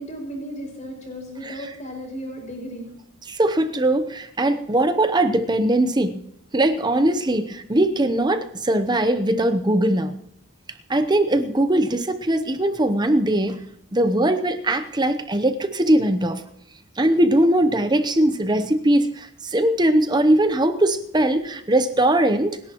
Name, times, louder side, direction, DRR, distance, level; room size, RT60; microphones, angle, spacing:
voice 1, 0.0-2.9, equal, 35° left, 1 dB, 6.0 m, -35 dB
voice 2, 1.4-1.7 3.3-6.2 6.5-10.2 10.9-13.6 13.9-16.4 17.0-22.6, right 1 dB, 20° right, 10 dB, 0.8 m, -20 dB
29.0 x 11.0 x 3.0 m, 0.77 s
head